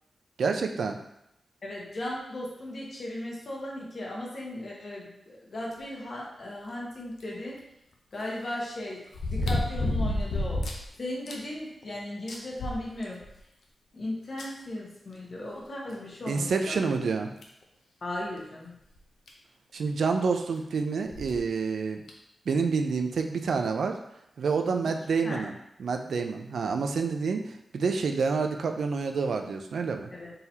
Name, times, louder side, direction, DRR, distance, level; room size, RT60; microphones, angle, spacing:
voice 1, 0.4-1.0 16.3-17.3 19.7-22.0 22.5-24.0 24.4-30.1, right 5 dB, 80° right, 5 dB, 0.4 m, -28 dB
voice 2, 1.6-7.6 8.1-10.7 11.0-13.2 13.9-16.8 18.0-18.7 24.8-24.9 25.2-25.4 30.1-30.3, left 1 dB, 45° left, -3 dB, 1.1 m, -37 dB
sound 1, 7.2-7.3 9.1-10.9 11.3-11.4 11.8-11.9 12.3-13.4 14.4-14.5 15.9-16.0 16.6-16.7 17.4-17.6 19.0-19.1 19.3-19.4 21.1-21.4 22.1-22.2, left 1 dB, 75° left, 0.6 m, -30 dB
4.2 x 3.9 x 2.8 m, 0.81 s
wide cardioid pair, 155°, 0 cm